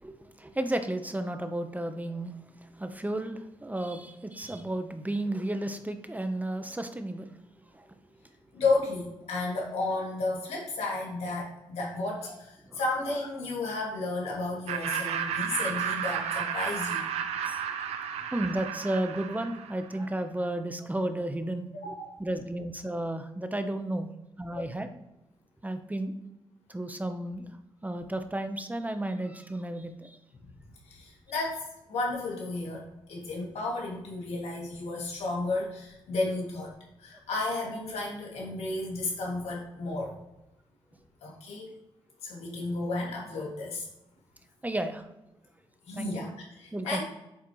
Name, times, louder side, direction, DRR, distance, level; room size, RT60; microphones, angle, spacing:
voice 1, 0.0-7.3 7.7-7.9 12.6-12.8 17.4-17.6 18.3-21.9 22.2-24.1 24.4-24.9 25.6-26.1 26.7-27.6 27.8-30.2 44.6-45.1 45.9-46.1 46.7-47.0, right 1 dB, 15° right, 8 dB, 0.8 m, -33 dB
voice 2, 8.5-17.0 21.8-22.2 24.5-24.6 30.9-31.6 31.9-36.7 37.0-40.2 41.2-41.7 42.2-43.9 45.8-47.0, left 2 dB, 85° left, -3 dB, 2.3 m, -33 dB
Laughter, 14.7-20.0, right 8 dB, 90° right, 0.6 m, -32 dB
8.3 x 4.6 x 3.1 m, 0.90 s
supercardioid pair, 55°, 10 cm